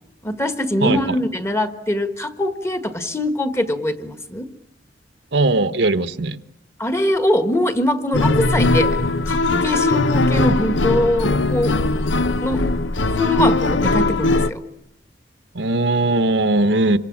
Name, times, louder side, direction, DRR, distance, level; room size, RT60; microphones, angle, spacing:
voice 1, 0.2-4.5 6.8-9.0 9.3-11.7 12.4-12.7 13.1-14.6, left 1 dB, 15° left, 9 dB, 1.4 m, -22 dB
voice 2, 0.8-1.2 5.3-6.4 15.5-17.0, right 2 dB, 70° right, 11 dB, 1.1 m, -19 dB
sound 1, 8.1-14.5, left 2 dB, 85° left, 0.9 m, -19 dB
27.5 x 24.5 x 7.3 m, 0.84 s
head